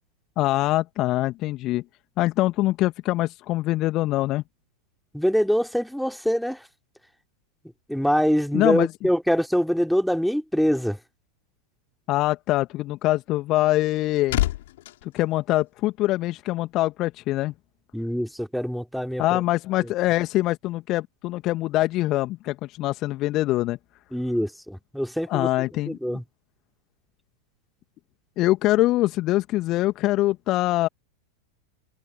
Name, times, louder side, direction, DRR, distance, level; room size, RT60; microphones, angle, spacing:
voice 1, 0.4-1.8 2.2-4.4 8.5-8.9 12.1-14.4 15.0-17.5 19.2-23.8 25.3-26.0 28.4-30.9, left 17 dB, 35° left, 2.1 m, -23 dB
voice 2, 5.1-6.7 7.9-11.0 17.9-19.4 19.8-19.9 24.1-25.5 25.9-26.2, equal, ahead, 3.6 m, -24 dB
sound 1, 13.8-16.2 16.5-16.8, left 16 dB, 55° left, 6.2 m, -30 dB
figure-of-eight pair, 90°, 0 cm